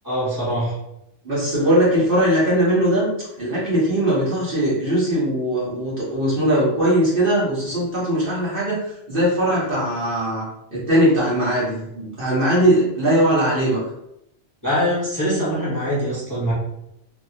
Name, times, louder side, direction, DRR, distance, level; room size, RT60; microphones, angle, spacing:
voice 1, 0.0-0.7 14.6-16.5, equal, 15° left, -9 dB, 1.0 m, -23 dB
voice 2, 1.2-3.1 3.4-10.4 10.7-13.8, right 1 dB, 50° right, -7 dB, 1.3 m, -20 dB
3.0 x 2.8 x 2.7 m, 0.81 s
omnidirectional pair, 1.3 m